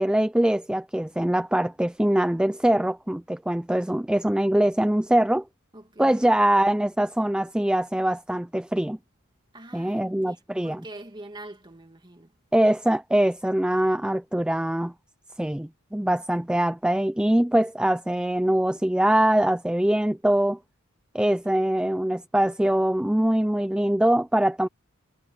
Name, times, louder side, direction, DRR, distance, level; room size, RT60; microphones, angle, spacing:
voice 1, 0.0-5.4 6.0-9.0 9.7-10.8 12.5-14.9 15.4-20.6 21.1-24.7, right 1 dB, 5° right, 0.4 m, -23 dB
voice 2, 5.7-6.3 9.5-12.3 21.2-21.6, right 1 dB, 20° right, 2.5 m, -44 dB
head